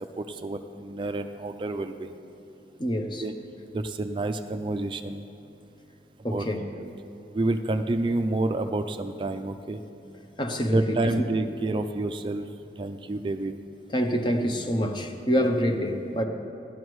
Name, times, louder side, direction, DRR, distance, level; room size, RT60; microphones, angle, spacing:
voice 1, 0.2-2.1 3.2-3.3 3.7-5.2 6.2-6.5 6.8-6.9 7.3-9.8 10.7-12.5 12.8-13.5, right 2 dB, 25° right, 7 dB, 0.3 m, -29 dB
voice 2, 2.8-3.2 6.2-6.6 10.4-11.2 13.9-16.2, equal, 25° left, 5 dB, 0.7 m, -26 dB
17.0 x 11.5 x 3.1 m, 2.8 s
head